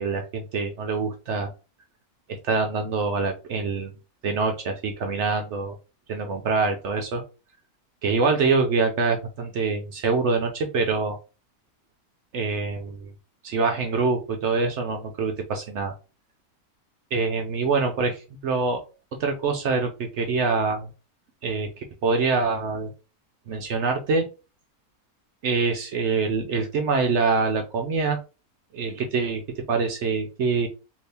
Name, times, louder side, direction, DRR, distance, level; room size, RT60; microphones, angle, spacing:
voice 1, 0.0-1.5 2.3-3.9 4.2-5.7 6.1-7.2 8.0-11.2 12.3-13.1 13.4-15.9 17.1-18.1 18.4-18.8 19.2-20.9 21.4-22.9 23.5-24.3 25.4-28.2 28.7-29.4 29.7-30.7, right 4 dB, 65° right, 4 dB, 0.7 m, -25 dB
2.9 x 2.7 x 3.3 m, 0.32 s
omnidirectional pair, 1.5 m